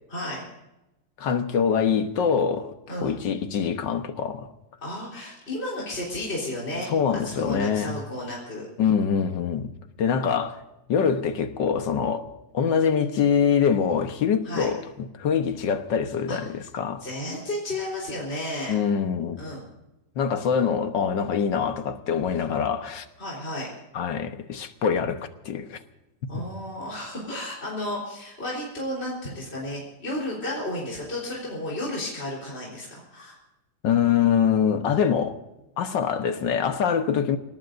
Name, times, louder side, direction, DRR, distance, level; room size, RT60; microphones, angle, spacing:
voice 1, 0.1-0.4 2.9-3.2 4.8-8.7 14.4-14.7 16.3-16.4 17.0-18.8 19.4-19.7 23.2-23.7 26.3-33.4, left 1 dB, 35° left, 4.3 m, -33 dB
voice 2, 1.2-2.8 3.0-4.5 6.9-7.9 8.8-9.7 10.0-10.6 10.9-12.3 12.5-17.0 18.7-19.4 20.2-23.1 23.9-25.8 26.3-26.4 33.8-35.4 35.8-37.4, left 7 dB, 75° left, 1.8 m, -24 dB
28.5 x 18.5 x 2.6 m
omnidirectional pair, 2.0 m